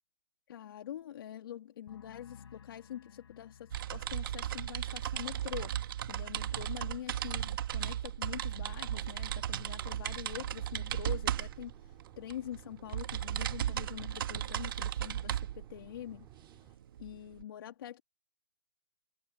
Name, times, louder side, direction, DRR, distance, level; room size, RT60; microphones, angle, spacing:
voice 1, 0.5-5.8 6.1-16.3 17.0-18.0, left 11 dB, 50° left, 2.4 m, -45 dB
sound 1, 1.9-9.3 9.6-10.1, left 7 dB, 70° left, 6.6 m, -60 dB
sound 2, 3.7-17.4, right 11 dB, 50° right, 2.0 m, -36 dB
sound 3, 8.6-16.8, right 13 dB, 20° right, 2.9 m, -61 dB
hypercardioid pair, 155°, 15 cm